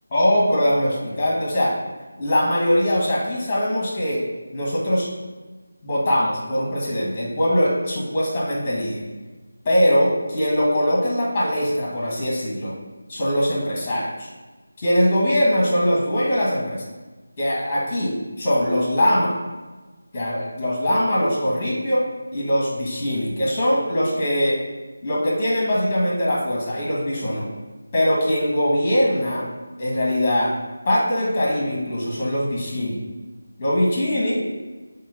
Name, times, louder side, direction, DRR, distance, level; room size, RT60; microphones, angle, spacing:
voice 1, 0.1-1.7 2.2-4.2 4.5-5.1 5.8-9.0 9.6-12.7 13.1-14.3 14.8-16.8 17.4-19.4 20.1-22.1 22.3-24.6 25.0-27.5 27.9-29.5 29.8-30.5 30.8-33.0 33.6-34.4, equal, 25° left, -5 dB, 1.6 m, -21 dB
7.2 x 2.5 x 5.1 m, 1.3 s
figure-of-eight pair, 165°, 0 cm